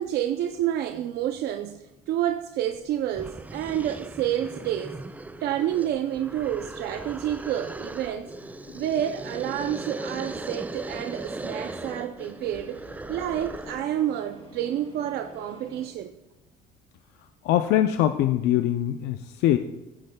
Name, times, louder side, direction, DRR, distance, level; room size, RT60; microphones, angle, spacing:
voice 1, 0.0-5.0 5.4-8.3 8.7-12.8 13.1-16.1, right 11 dB, 70° right, 0.5 m, -29 dB
sound 1, 1.0-15.9, left 2 dB, 30° left, 3.1 m, -49 dB
sound 2, 2.7-2.8 3.1-13.9, right 2 dB, 10° right, 0.3 m, -38 dB
voice 2, 17.4-19.6, left 12 dB, 85° left, 0.5 m, -22 dB
15.0 x 8.6 x 2.2 m
cardioid pair, 110°, 17 cm